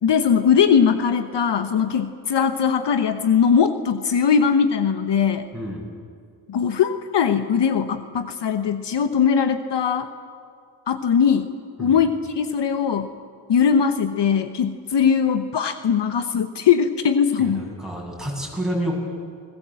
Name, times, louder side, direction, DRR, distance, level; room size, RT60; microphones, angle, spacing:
voice 1, 0.0-5.5 6.5-10.1 10.9-11.5 11.8-13.1 13.5-17.7, left 7 dB, 65° left, 9 dB, 1.2 m, -20 dB
voice 2, 5.5-5.8 11.8-12.0 17.4-18.9, right 1 dB, ahead, -2 dB, 7.9 m, -29 dB
28.5 x 20.0 x 7.7 m, 2.2 s
cardioid pair, 85°, 45 cm